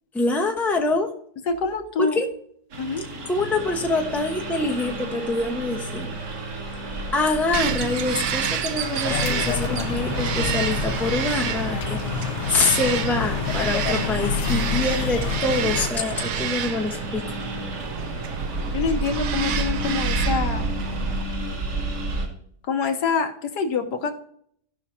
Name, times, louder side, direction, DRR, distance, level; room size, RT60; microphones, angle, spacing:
voice 1, 0.1-1.1 2.0-2.3 3.3-6.2 7.1-17.2, left 3 dB, ahead, 2 dB, 0.9 m, -25 dB
voice 2, 1.4-2.2 2.8-3.1 18.7-20.7 22.7-24.1, left 5 dB, 80° left, 5 dB, 1.7 m, -26 dB
Engine, 2.7-22.3, right 2 dB, 90° right, 3.0 m, -31 dB
Bird vocalization bird call bird song, 7.5-21.2, right 8 dB, 65° right, 1.0 m, -30 dB
sound 1, 9.0-15.9, left 7 dB, 65° left, 0.7 m, -28 dB
16.5 x 5.9 x 2.8 m, 0.66 s
omnidirectional pair, 1.8 m